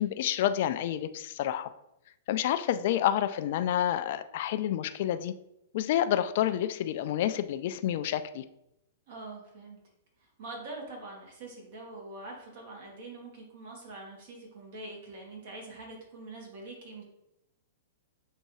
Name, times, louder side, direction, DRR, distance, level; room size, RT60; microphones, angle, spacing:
voice 1, 0.0-1.7 2.3-5.3 5.7-8.4, left 11 dB, 55° left, 11 dB, 0.3 m, -29 dB
voice 2, 9.1-9.8 10.4-17.0, right 2 dB, 60° right, -1 dB, 1.5 m, -44 dB
6.5 x 2.6 x 3.1 m, 0.84 s
hypercardioid pair, 130°, 0 cm